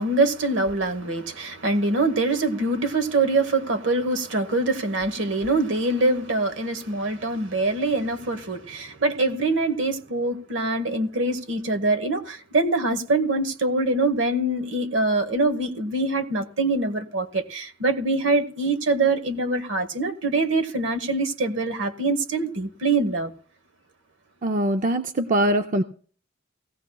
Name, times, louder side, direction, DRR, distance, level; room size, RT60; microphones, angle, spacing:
voice 1, 0.0-23.3, right 2 dB, 65° right, 1.2 m, -24 dB
voice 2, 24.4-25.8, right 1 dB, 40° right, 0.5 m, -22 dB
17.5 x 16.0 x 2.3 m
head